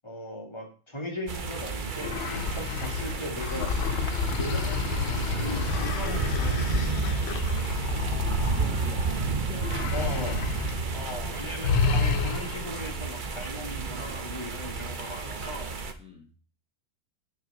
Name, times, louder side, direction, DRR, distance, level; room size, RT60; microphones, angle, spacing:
voice 1, 0.0-3.7 4.4-7.2 9.9-10.4 10.9-15.7, left 1 dB, 15° left, 1 dB, 2.1 m, -38 dB
sound 1, 1.3-15.9, right 4 dB, 60° right, 0.5 m, -31 dB
sound 2, 2.0-9.2 9.6-10.8 11.1-11.3 11.6-12.8, left 5 dB, 80° left, 1.6 m, -30 dB
sound 3, 3.0-13.0, left 5 dB, 60° left, 0.6 m, -42 dB
voice 2, 7.9-11.5 16.0-16.3, left 1 dB, 5° right, -2 dB, 3.2 m, -46 dB
9.4 x 4.6 x 7.5 m, 0.39 s
omnidirectional pair, 2.2 m